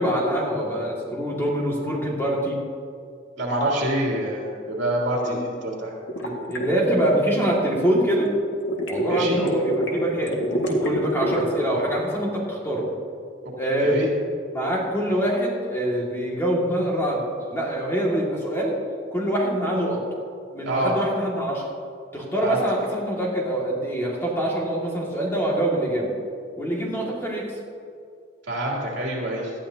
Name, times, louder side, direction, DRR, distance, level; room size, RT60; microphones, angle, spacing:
voice 1, 0.0-2.6 5.2-5.4 6.2-8.3 8.9-12.9 13.6-14.0 14.5-18.8 19.1-20.0 20.5-21.7 22.1-26.1 26.6-27.5, right 1 dB, 15° left, -4 dB, 2.0 m, -25 dB
voice 2, 3.4-5.9 9.0-9.4 13.8-14.1 20.7-20.9 22.4-22.6 28.5-29.5, right 1 dB, 70° right, -3 dB, 3.0 m, -26 dB
sound 1, 6.1-7.9 8.5-11.7, equal, 70° left, 1.8 m, -26 dB
18.5 x 12.0 x 2.8 m, 2.3 s
head